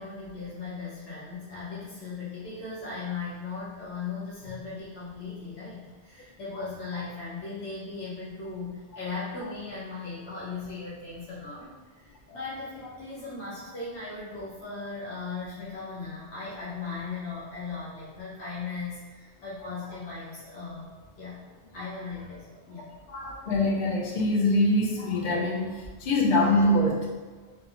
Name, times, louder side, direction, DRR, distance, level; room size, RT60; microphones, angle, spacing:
voice 1, 0.0-20.9 21.2-21.4 21.7-22.9, left 4 dB, 85° left, -9 dB, 1.0 m, -38 dB
voice 2, 23.1-27.2, left 1 dB, 55° left, -2 dB, 0.6 m, -24 dB
2.7 x 2.3 x 2.4 m, 1.2 s
omnidirectional pair, 1.1 m